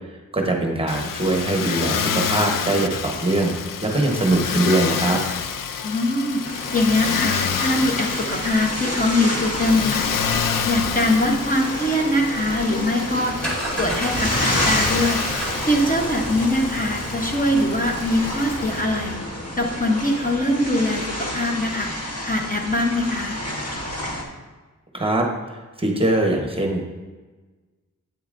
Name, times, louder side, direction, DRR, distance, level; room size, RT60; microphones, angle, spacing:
voice 1, 0.3-3.5 3.8-5.2 24.9-25.2 25.5-26.9, right 2 dB, 15° right, 0 dB, 1.0 m, -22 dB
Motor vehicle (road), 0.9-18.8, left 7 dB, 85° left, 0.5 m, -29 dB
voice 2, 5.8-10.1 10.4-13.4 13.8-15.3 15.6-19.2 19.6-21.9 22.2-23.4, left 1 dB, 25° left, 0 dB, 0.9 m, -22 dB
sound 1, 6.4-24.2, equal, 50° left, 1.3 m, -30 dB
sound 2, 13.1-19.5, right 1 dB, 5° left, 1.9 m, -31 dB
8.6 x 6.8 x 2.5 m, 1.3 s
wide cardioid pair, 120°, 32 cm